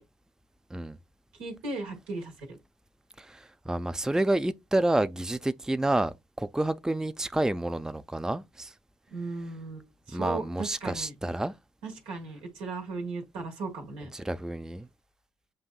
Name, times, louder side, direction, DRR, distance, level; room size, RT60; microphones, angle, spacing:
voice 1, 1.4-2.6 9.1-11.1 11.8-14.1, right 3 dB, 85° right, 1.3 m, -37 dB
voice 2, 3.2-8.7 10.1-11.5 14.1-14.9, right 1 dB, 5° right, 0.4 m, -29 dB
7.4 x 2.6 x 2.3 m
supercardioid pair, 45°, 9 cm